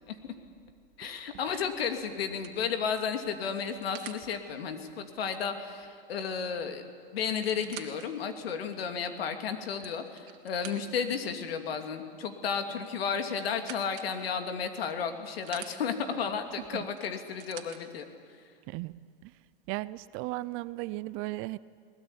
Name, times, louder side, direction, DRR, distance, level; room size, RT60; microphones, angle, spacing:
voice 1, 1.0-6.8 7.1-18.0, left 6 dB, 85° left, 7 dB, 2.8 m, -33 dB
sound 1, 1.3-1.6 2.2-4.3 6.3-6.4 6.7-6.8 7.3-8.1 8.7-8.8 9.5-11.1 12.8-14.1 14.8-15.7 17.0-17.8 18.7-18.8, right 13 dB, 65° right, 2.5 m, -47 dB
voice 2, 18.7-19.3 19.7-21.6, right 19 dB, 45° right, 18 dB, 0.6 m, -36 dB
21.0 x 20.0 x 9.9 m, 2.2 s
hypercardioid pair, 115°, 29 cm